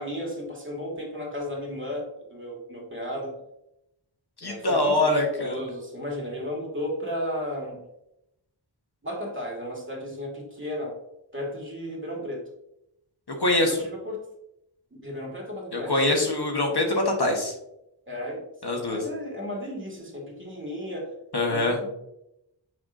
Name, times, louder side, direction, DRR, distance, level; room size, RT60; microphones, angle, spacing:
voice 1, 0.0-3.4 4.4-7.8 9.0-11.0 11.3-12.4 13.6-14.2 14.9-16.0 18.1-18.4 18.9-21.1 21.5-21.9, equal, 25° right, -1 dB, 2.0 m, -34 dB
voice 2, 4.4-5.6 13.4-13.8 15.7-17.5 18.6-19.0 21.3-21.8, left 2 dB, 55° left, 1 dB, 1.2 m, -24 dB
6.3 x 5.8 x 2.6 m, 0.84 s
wide cardioid pair, 50°, 46 cm